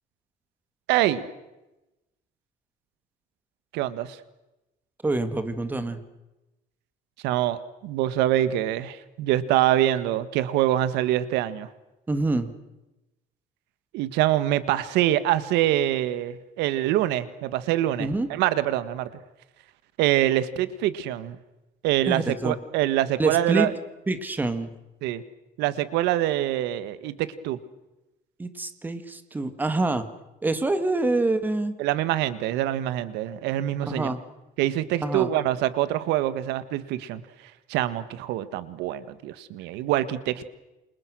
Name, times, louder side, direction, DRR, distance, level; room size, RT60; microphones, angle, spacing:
voice 1, 0.9-1.3 3.7-4.2 7.2-11.7 13.9-19.1 20.0-21.4 21.8-23.7 25.0-25.2 25.6-27.6 31.8-34.1 34.6-37.2 37.7-40.4, right 13 dB, 90° right, 14 dB, 1.7 m, -25 dB
voice 2, 5.0-6.0 12.1-12.5 18.0-18.3 22.1-22.6 23.2-23.7 24.1-24.7 28.4-30.1 30.4-31.7 33.8-34.2 35.0-35.3, right 2 dB, 10° right, 10 dB, 1.7 m, -26 dB
29.0 x 27.5 x 6.3 m, 0.99 s
cardioid pair, 170°, 17 cm